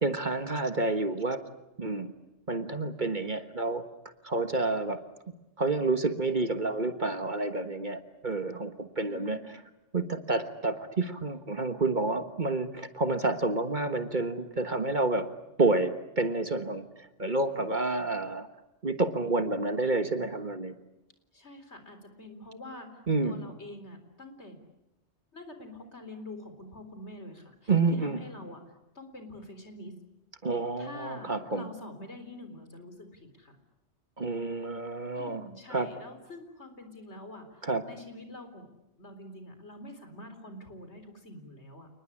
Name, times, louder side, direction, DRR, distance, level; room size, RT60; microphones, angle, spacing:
voice 1, 0.0-1.4 1.8-2.1 2.5-3.8 4.2-5.0 5.6-9.4 9.9-15.3 15.6-18.5 18.8-20.7 23.1-23.4 27.7-28.2 30.4-31.7 34.2-35.4 35.7-35.9 37.6-37.8, right 3 dB, 40° right, 9 dB, 1.5 m, -29 dB
voice 2, 9.1-9.4 21.3-24.6 25.3-29.9 30.8-33.6 35.1-38.7 39.0-41.9, left 1 dB, 60° left, 8 dB, 4.3 m, -46 dB
29.5 x 20.0 x 10.0 m, 0.93 s
omnidirectional pair, 1.3 m